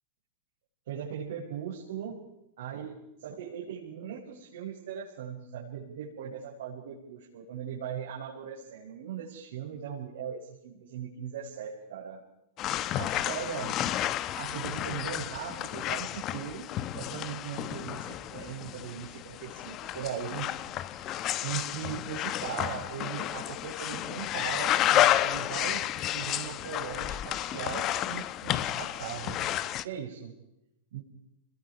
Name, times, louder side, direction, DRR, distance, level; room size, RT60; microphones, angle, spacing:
voice 1, 0.9-2.2 2.6-12.2 12.9-13.9 14.3-16.7 16.9-20.5 20.8-29.5 29.8-30.3 30.9-31.0, right 8 dB, 75° right, -5 dB, 5.9 m, -39 dB
sound 1, 12.6-29.8, left 13 dB, 35° left, 0.9 m, -31 dB
28.5 x 21.5 x 5.0 m, 0.85 s
supercardioid pair, 145°, 0 cm